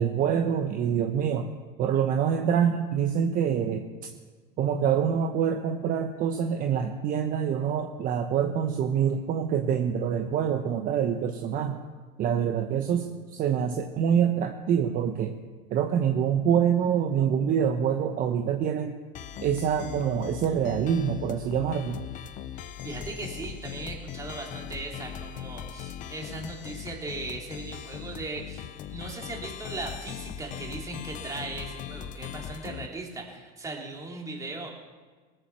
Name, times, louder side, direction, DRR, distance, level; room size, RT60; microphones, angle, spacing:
voice 1, 0.0-1.5 1.8-3.8 4.6-11.8 12.2-15.3 15.7-18.9 19.4-22.0, right 8 dB, 40° right, 5 dB, 1.0 m, -26 dB
sound 1, 19.1-32.9, left 10 dB, 35° left, 0.7 m, -40 dB
voice 2, 22.8-34.7, right 2 dB, 15° right, -1 dB, 2.9 m, -38 dB
18.5 x 7.8 x 6.9 m, 1.4 s
supercardioid pair, 135°, 21 cm